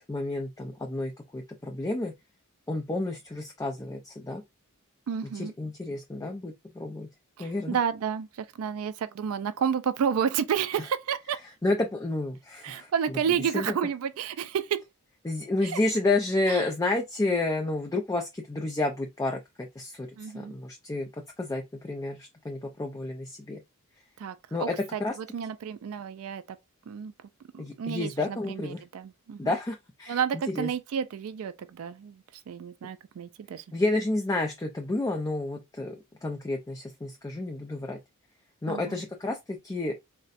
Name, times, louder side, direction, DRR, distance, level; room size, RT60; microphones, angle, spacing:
voice 1, 0.0-2.1 2.7-4.4 5.3-7.1 7.4-7.8 11.6-13.2 13.5-13.8 15.2-21.1 21.4-23.6 24.5-25.2 27.6-28.8 29.4-30.7 33.7-38.0 38.6-40.0, left 2 dB, 15° left, 0.4 m, -30 dB
voice 2, 5.1-5.5 7.4-11.4 12.6-14.8 15.6-15.8 16.5-16.6 20.2-20.5 24.2-26.6 26.9-27.1 27.5-29.5 30.1-33.6 38.7-39.0, right 7 dB, 65° right, 0.3 m, -31 dB
4.0 x 2.1 x 2.4 m
head